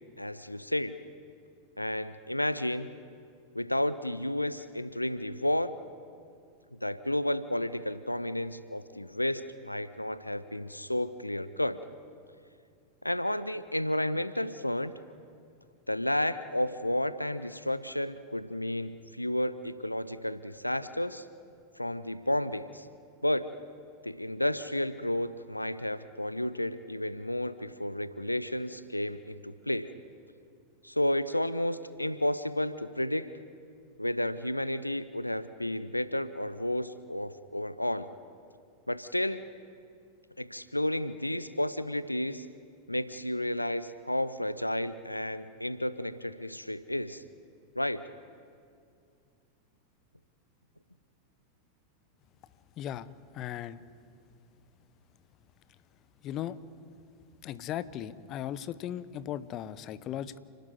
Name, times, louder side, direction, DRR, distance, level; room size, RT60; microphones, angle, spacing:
voice 1, 0.2-1.0 1.8-2.9 3.5-5.7 6.8-11.8 13.0-14.9 15.9-21.3 21.8-22.9 23.2-23.5 24.0-29.9 30.8-33.3 34.0-38.1 38.9-39.4 40.4-42.5 42.9-47.2 47.8-48.0, left 1 dB, 85° left, 14 dB, 0.7 m, -32 dB
voice 2, 52.8-53.1 53.3-53.8 56.2-56.6 57.4-60.4, left 11 dB, 35° left, 16 dB, 0.8 m, -37 dB
29.0 x 12.0 x 9.4 m, 2.3 s
figure-of-eight pair, 90°, 0 cm